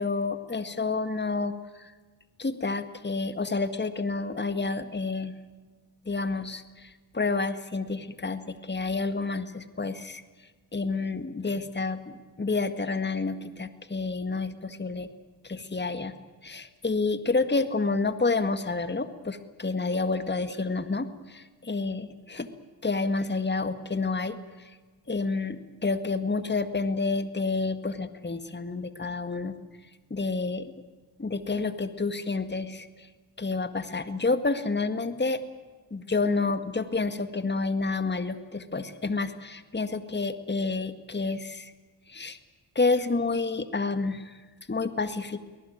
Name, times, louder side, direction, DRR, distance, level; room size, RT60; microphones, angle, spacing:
voice 1, 0.0-1.9 2.4-5.3 6.1-10.2 10.7-15.1 15.4-16.1 16.4-22.5 22.8-24.4 25.1-29.6 30.1-30.6 31.2-33.1 33.4-35.4 35.9-41.7 42.1-42.4 42.8-44.4 44.7-45.4, left 3 dB, 20° left, 10 dB, 1.9 m, -29 dB
23.0 x 19.5 x 9.2 m, 1.3 s
supercardioid pair, 45°, 49 cm